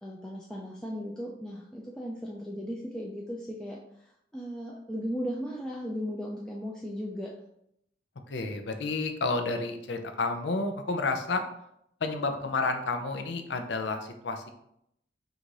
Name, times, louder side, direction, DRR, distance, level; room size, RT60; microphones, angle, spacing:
voice 1, 0.0-7.3, equal, 5° left, -3 dB, 0.4 m, -36 dB
voice 2, 8.3-11.4 12.0-14.5, left 3 dB, 85° left, 6 dB, 0.6 m, -30 dB
3.9 x 2.6 x 4.7 m, 0.76 s
head